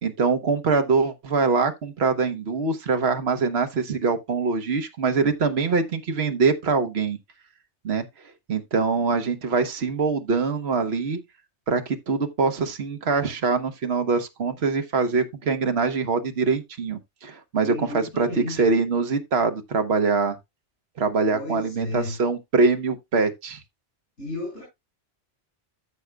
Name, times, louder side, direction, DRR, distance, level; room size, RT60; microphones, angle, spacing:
voice 1, 0.0-7.2 7.8-8.0 8.5-11.2 11.7-20.4 21.0-23.6, right 4 dB, 65° right, 1.4 m, -23 dB
voice 2, 17.6-18.6 21.3-22.2 24.2-24.6, left 2 dB, 85° left, 5.6 m, -33 dB
14.0 x 6.3 x 2.3 m
omnidirectional pair, 1.2 m